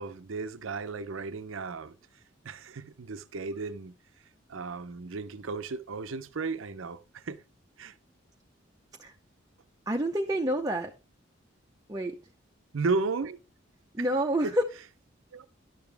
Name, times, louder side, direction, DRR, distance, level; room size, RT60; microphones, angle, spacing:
voice 1, 0.0-1.9 2.4-3.9 4.5-7.4 7.8-7.9 12.7-13.4 14.0-14.1 14.4-14.5 15.3-15.5, right 4 dB, 90° right, 0.6 m, -34 dB
voice 2, 9.9-10.9 11.9-12.2 13.9-14.6, right 1 dB, 20° right, 0.6 m, -28 dB
11.0 x 7.0 x 3.4 m
head